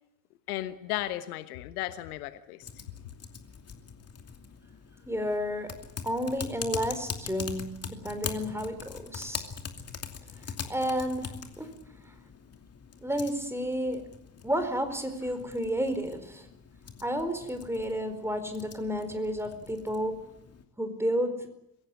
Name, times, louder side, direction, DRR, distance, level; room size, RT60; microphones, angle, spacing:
voice 1, 0.5-2.7, left 15 dB, 65° left, 1.3 m, -35 dB
Typing, 2.6-20.6, left 6 dB, 30° left, 2.7 m, -43 dB
voice 2, 5.1-5.8 6.0-9.5 10.7-11.7 13.0-14.1 14.4-16.5 17.0-20.2 20.8-21.5, equal, 5° right, 4.5 m, -31 dB
23.5 x 16.5 x 9.6 m
figure-of-eight pair, 60°, 47 cm